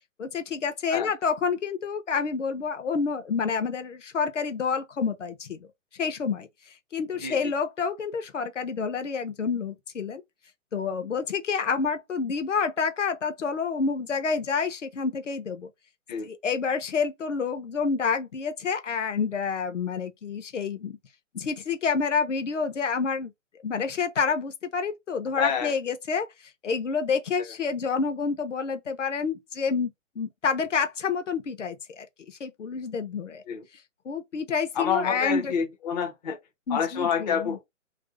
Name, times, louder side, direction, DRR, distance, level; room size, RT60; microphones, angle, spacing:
voice 1, 0.2-5.7 6.0-6.5 6.9-10.2 10.7-15.7 16.3-21.0 21.3-23.3 23.6-26.3 26.6-29.9 30.2-33.4 34.0-35.5 36.7-37.6, left 5 dB, 65° left, 0.7 m, -28 dB
voice 2, 25.4-25.7 33.5-33.6 34.8-36.4 36.7-37.7, left 7 dB, 35° left, 0.5 m, -28 dB
2.6 x 2.1 x 3.8 m
figure-of-eight pair, 125°, 39 cm